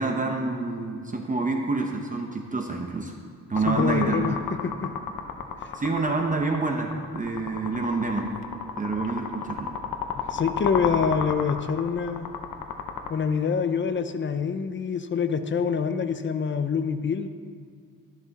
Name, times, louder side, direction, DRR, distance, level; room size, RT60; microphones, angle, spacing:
voice 1, 0.0-3.2 3.5-4.2 5.7-8.3 8.8-9.7, right 3 dB, 25° right, 2 dB, 0.9 m, -27 dB
sound 1, 3.6-13.1, left 6 dB, 75° left, 0.9 m, -32 dB
voice 2, 3.7-4.9 5.6-5.7 10.1-12.3 13.1-17.3, left 6 dB, 35° left, 9 dB, 0.6 m, -26 dB
12.5 x 11.0 x 4.1 m, 2.1 s
wide cardioid pair, 155°, 34 cm